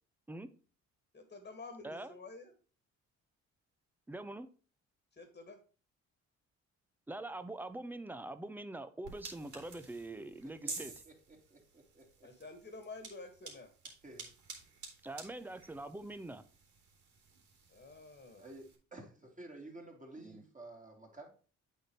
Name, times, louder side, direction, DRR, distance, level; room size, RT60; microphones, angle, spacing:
voice 1, 1.1-2.5 5.2-5.6 12.2-13.7 17.7-18.4, left 3 dB, 30° left, 7 dB, 1.7 m, -49 dB
voice 2, 4.1-4.5 7.1-10.9 15.0-16.4 20.2-20.4, right 2 dB, 5° right, 12 dB, 0.7 m, -44 dB
sound 1, 9.0-18.8, right 4 dB, 75° right, 3.2 m, -51 dB
voice 3, 10.4-12.3 13.8-14.3 18.4-21.3, right 2 dB, 25° right, 1 dB, 2.8 m, -52 dB
8.2 x 4.3 x 4.7 m, 0.38 s
cardioid pair, 90°, 30 cm